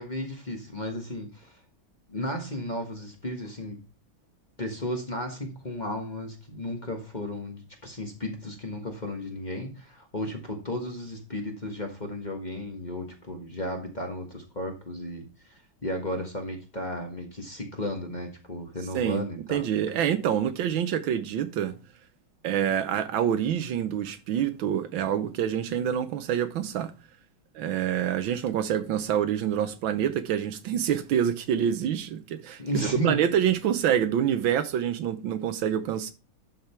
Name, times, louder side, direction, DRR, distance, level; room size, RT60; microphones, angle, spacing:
voice 1, 0.0-1.6 2.1-3.8 4.6-19.7 32.6-33.2, left 1 dB, 25° left, 1.4 m, -34 dB
voice 2, 19.5-21.7 22.4-26.9 27.5-36.1, right 9 dB, 75° right, 1.5 m, -26 dB
11.5 x 5.2 x 4.4 m
omnidirectional pair, 2.2 m